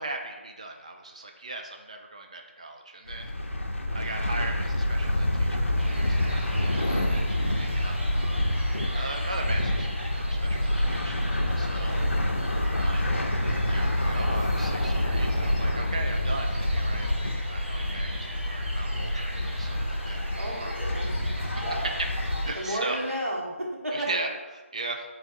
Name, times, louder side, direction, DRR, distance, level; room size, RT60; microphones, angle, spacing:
voice 1, 0.0-3.3 3.9-8.0 8.3-8.5 8.9-12.0 12.7-13.2 13.5-20.7 21.3-21.5 22.0-22.1 22.4-23.0 23.9-25.0, right 2 dB, 30° right, 3 dB, 0.3 m, -38 dB
sound 1, 3.1-22.5, left 1 dB, 70° left, 0.6 m, -27 dB
sound 2, 5.8-23.2, equal, 50° right, 1.0 m, -42 dB
voice 2, 11.8-12.1 20.4-21.1 21.6-21.9 22.5-24.1, right 1 dB, 85° right, -4 dB, 1.3 m, -32 dB
3.8 x 2.6 x 4.3 m, 1.2 s
figure-of-eight pair, 160°, 7 cm